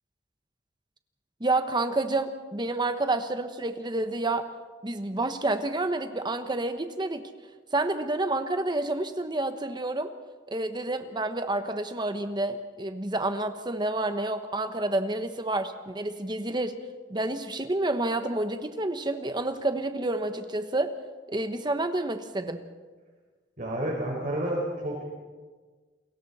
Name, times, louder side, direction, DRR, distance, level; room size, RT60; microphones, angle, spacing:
voice 1, 1.4-4.5 4.8-7.3 7.7-10.1 10.5-16.8 17.1-20.9 21.3-22.6, right 2 dB, 25° right, 8 dB, 1.2 m, -29 dB
voice 2, 23.6-25.0, right 1 dB, 45° right, -1 dB, 4.8 m, -30 dB
29.0 x 22.0 x 4.3 m, 1.4 s
head